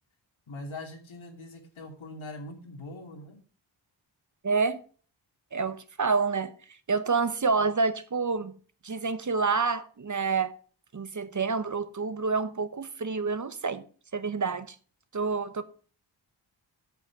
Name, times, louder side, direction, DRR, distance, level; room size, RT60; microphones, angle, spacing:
voice 1, 0.5-3.4, left 2 dB, 90° left, 2.9 m, -42 dB
voice 2, 4.4-4.8 5.5-6.5 6.9-8.6 8.8-10.5 10.9-13.8 14.1-14.8 15.1-15.6, right 4 dB, 40° right, 0.9 m, -28 dB
8.2 x 7.9 x 6.0 m
wide cardioid pair, 130°, 46 cm